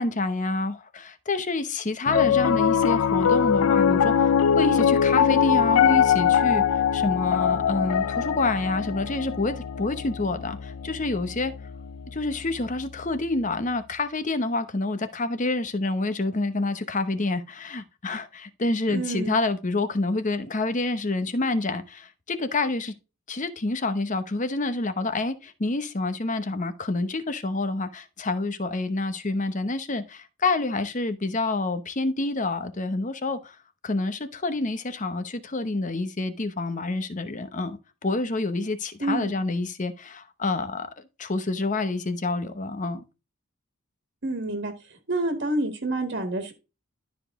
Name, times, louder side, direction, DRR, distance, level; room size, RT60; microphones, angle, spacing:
voice 1, 0.0-6.6 6.9-11.5 12.1-22.9 23.3-33.6 33.8-40.9 41.2-43.0, left 2 dB, 35° left, 0.9 m, -28 dB
Piano, 2.1-12.4, left 8 dB, 80° left, 0.4 m, -22 dB
voice 2, 18.9-19.4 39.0-39.3 44.2-46.5, right 2 dB, 50° right, 1.6 m, -28 dB
12.5 x 5.1 x 3.6 m
head